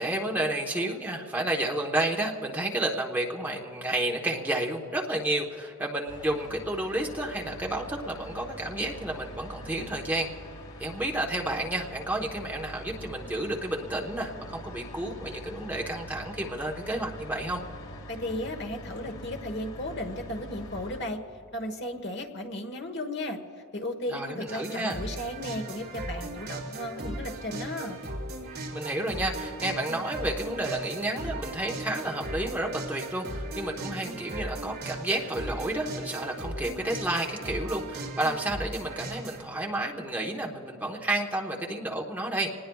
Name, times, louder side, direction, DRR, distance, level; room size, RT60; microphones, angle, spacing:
voice 1, 0.0-10.3 10.8-17.6 24.1-25.0 28.7-42.5, right 1 dB, 10° right, -1 dB, 1.1 m, -31 dB
sound 1, 6.1-21.0, equal, 80° left, 2.1 m, -44 dB
voice 2, 18.1-21.2 21.5-23.4 23.7-28.0, left 1 dB, 50° left, 5 dB, 1.3 m, -35 dB
sound 2, 24.5-39.4, right 2 dB, 50° right, 2.9 m, -37 dB
26.5 x 19.5 x 2.3 m, 2.9 s
head